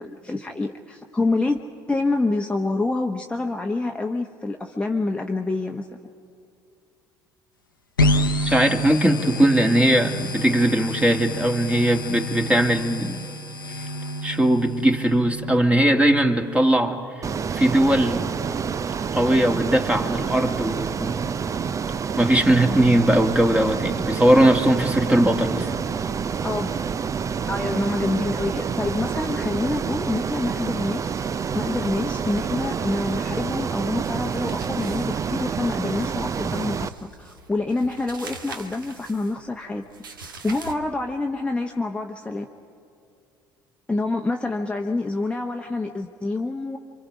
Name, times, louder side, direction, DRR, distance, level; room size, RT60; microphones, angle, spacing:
voice 1, 0.0-1.6 1.9-5.9 22.7-23.0 26.4-26.7 27.5-36.9 37.2-39.8 40.2-42.5 43.9-46.8, left 2 dB, 10° left, 2 dB, 1.1 m, -27 dB
sound 1, 8.0-15.6, equal, 85° left, 0.9 m, -28 dB
voice 2, 8.4-13.2 14.2-17.0 17.5-18.3 19.1-21.2 22.1-25.7, right 1 dB, 10° right, 5 dB, 1.9 m, -19 dB
Ocean, 17.2-36.9, right 6 dB, 30° right, 0.6 m, -28 dB
sound 2, 34.0-40.7, right 4 dB, 80° right, 1.2 m, -43 dB
28.0 x 25.0 x 5.2 m, 2.5 s
figure-of-eight pair, 55°, 11 cm